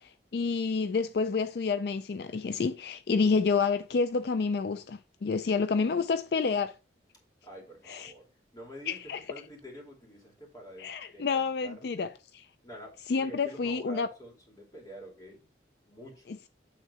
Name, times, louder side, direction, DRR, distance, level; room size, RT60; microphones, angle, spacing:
voice 1, 0.0-6.8 7.9-8.1 8.9-9.2 10.8-12.1 12.3-12.4 13.1-14.1, left 4 dB, 60° left, 0.4 m, -29 dB
voice 2, 7.4-12.1 12.6-15.5 15.9-16.4, equal, 20° left, 2.7 m, -48 dB
9.1 x 3.8 x 4.3 m
head